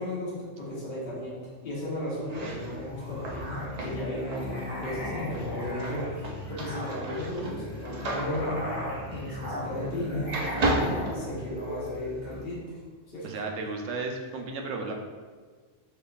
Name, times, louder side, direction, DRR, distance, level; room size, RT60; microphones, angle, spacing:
voice 1, 0.0-8.6 9.1-10.3 10.7-12.8 13.1-13.2, left 1 dB, 55° left, -8 dB, 1.3 m, -35 dB
sound 1, 2.2-10.0 10.3-11.9, right 2 dB, 50° right, 0.5 m, -34 dB
Musical instrument, 2.3-12.4, left 1 dB, 10° right, 0.8 m, -36 dB
voice 2, 13.2-14.9, right 3 dB, 80° right, 3 dB, 0.9 m, -34 dB
4.7 x 3.7 x 2.3 m, 1.5 s
omnidirectional pair, 1.3 m